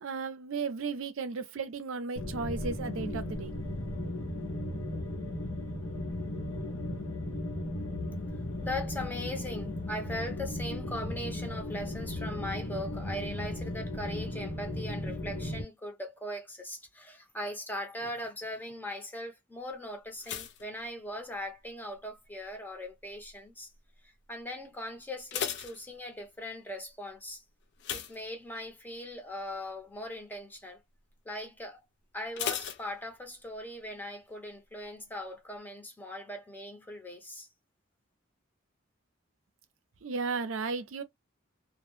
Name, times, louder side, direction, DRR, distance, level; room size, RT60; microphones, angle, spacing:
voice 1, 0.0-3.5 40.0-41.0, right 4 dB, 70° right, 0.5 m, -34 dB
sound 1, 2.2-15.6, left 1 dB, 80° left, 0.8 m, -36 dB
voice 2, 8.6-23.7 24.3-27.4 27.9-30.8 31.2-31.8 32.1-37.5, left 1 dB, 10° left, 0.8 m, -40 dB
sound 2, 20.2-21.7 21.9-22.5 23.1-23.4 23.7-23.8 24.2-24.3 25.0-26.5 27.8-28.9 29.3-29.6 29.9-30.0 32.4-33.6 33.8-33.9, left 8 dB, 60° left, 0.4 m, -38 dB
2.1 x 2.0 x 2.9 m
head